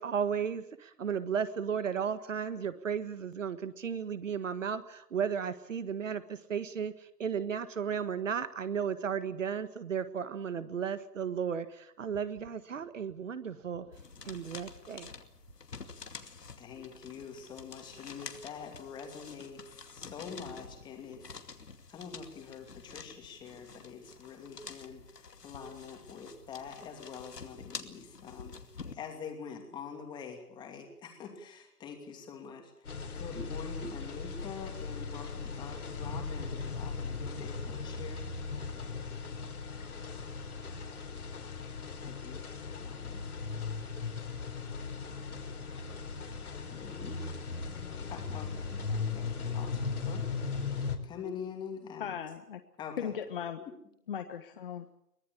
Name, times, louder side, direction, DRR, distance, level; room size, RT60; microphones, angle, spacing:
voice 1, 0.0-6.9 7.2-13.9 14.2-15.1, right 7 dB, 55° right, 12 dB, 1.7 m, -34 dB
sound 1, 13.9-28.9, left 5 dB, 85° left, 2.6 m, -48 dB
voice 2, 16.6-21.4 21.9-28.6 28.9-38.3 42.0-42.5 42.8-43.3 46.6-47.2 48.1-48.5 48.9-50.3 51.0-52.2 52.8-53.1, left 6 dB, 10° left, 3 dB, 2.7 m, -45 dB
sound 2, 32.9-51.0, left 4 dB, 65° left, 4.1 m, -38 dB
voice 3, 52.0-52.6 53.0-53.6 54.1-54.9, left 8 dB, 35° left, 7 dB, 1.3 m, -37 dB
23.5 x 17.5 x 8.5 m, 0.75 s
hypercardioid pair, 155°, 47 cm